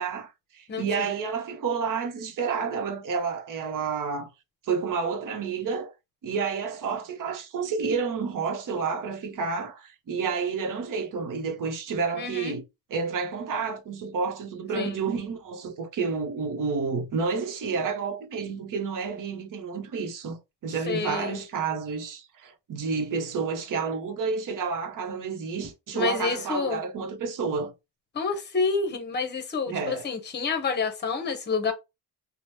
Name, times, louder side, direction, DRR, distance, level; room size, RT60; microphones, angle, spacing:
voice 1, 0.0-4.3 4.6-5.9 6.2-12.6 12.9-27.7 29.7-30.1, right 5 dB, 55° right, 0.9 m, -30 dB
voice 2, 0.7-1.1 12.1-12.6 14.7-14.9 20.9-21.4 25.9-26.8 28.1-31.7, left 5 dB, 30° left, 0.7 m, -28 dB
2.9 x 2.1 x 3.2 m
cardioid pair, 130°, 38 cm